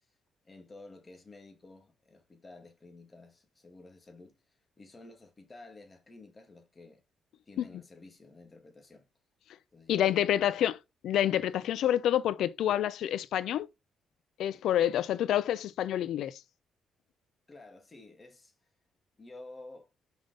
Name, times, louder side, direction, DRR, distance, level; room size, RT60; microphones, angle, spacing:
voice 1, 0.4-7.0 7.5-9.1 9.7-10.5 17.5-18.5 19.2-19.9, left 2 dB, 25° left, 2.1 m, -52 dB
voice 2, 9.9-10.8 11.0-13.7 14.4-16.4, left 11 dB, 75° left, 0.6 m, -28 dB
5.8 x 5.4 x 3.8 m
cardioid pair, 90°, 0 cm